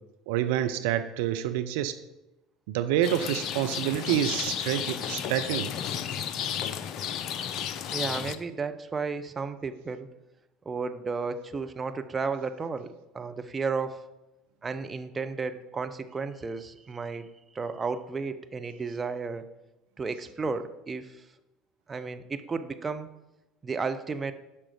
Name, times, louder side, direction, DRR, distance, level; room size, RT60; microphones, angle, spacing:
voice 1, 0.3-2.0 2.7-5.7, right 11 dB, 60° right, 10 dB, 0.5 m, -27 dB
Rain, 3.0-8.4, left 9 dB, 50° left, 0.5 m, -33 dB
voice 2, 7.9-10.1 10.7-14.0 14.6-17.3 17.5-19.4 20.0-21.2 21.9-23.1 23.6-24.3, right 4 dB, 25° right, 8 dB, 0.7 m, -33 dB
10.0 x 6.1 x 4.9 m, 0.97 s
figure-of-eight pair, 65°, 0 cm